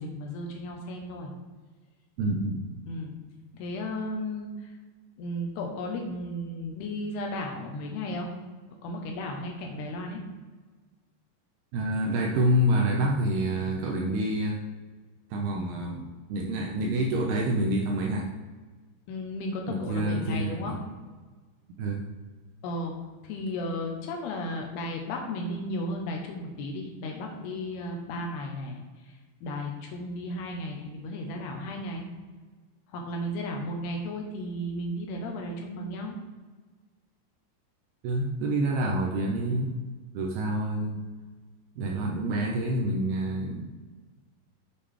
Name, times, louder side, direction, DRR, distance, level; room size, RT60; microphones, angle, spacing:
voice 1, 0.0-1.3 2.9-3.1 3.5-4.7 5.2-8.3 8.8-10.2 19.1-20.8 22.6-22.9 23.2-28.8 29.4-32.1 32.9-36.2, left 1 dB, 75° left, 1 dB, 2.7 m, -34 dB
voice 2, 2.2-2.8 11.7-14.6 15.3-16.0 16.3-18.3 19.9-20.8 21.8-22.0 38.0-39.8 40.1-41.0 41.8-43.6, right 1 dB, 80° right, 1 dB, 2.4 m, -27 dB
7.3 x 6.8 x 3.4 m, 1.4 s
omnidirectional pair, 5.2 m